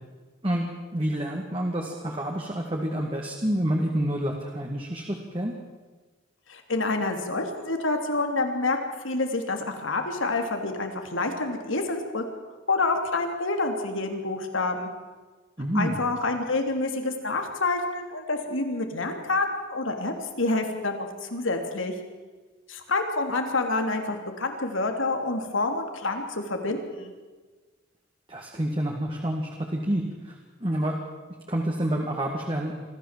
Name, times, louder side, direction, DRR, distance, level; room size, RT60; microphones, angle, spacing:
voice 1, 0.4-5.5 15.6-15.9 28.3-31.0 31.5-32.7, right 1 dB, 25° right, 0 dB, 2.1 m, -28 dB
voice 2, 6.5-12.2 12.7-14.9 15.7-21.9 22.7-27.1, left 3 dB, 85° left, 4 dB, 3.0 m, -28 dB
25.0 x 14.5 x 7.5 m, 1.3 s
head